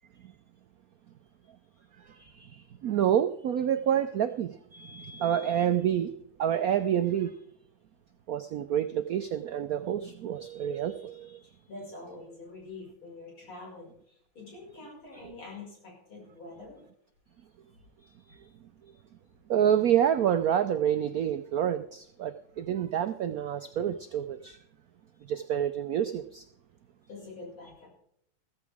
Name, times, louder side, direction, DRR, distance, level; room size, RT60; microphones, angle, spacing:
voice 1, 2.1-6.1 6.4-7.4 8.3-11.4 18.3-18.5 19.5-24.6 25.3-26.4, right 9 dB, 80° right, 0.8 m, -28 dB
voice 2, 11.4-16.8 27.1-27.9, left 3 dB, 75° left, 6.4 m, -46 dB
15.0 x 14.5 x 3.5 m
omnidirectional pair, 2.3 m